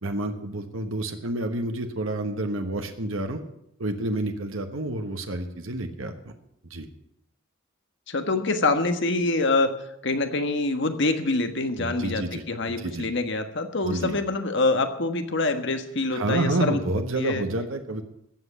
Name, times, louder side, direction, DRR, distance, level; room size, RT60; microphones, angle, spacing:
voice 1, 0.0-3.4 3.8-6.3 6.7-6.9 11.8-13.1 13.8-14.1 16.1-18.0, right 2 dB, 80° right, 5 dB, 1.3 m, -29 dB
voice 2, 8.1-9.7 10.0-16.8 17.2-17.5, left 2 dB, 60° left, 7 dB, 1.4 m, -25 dB
14.5 x 7.9 x 8.1 m, 0.78 s
head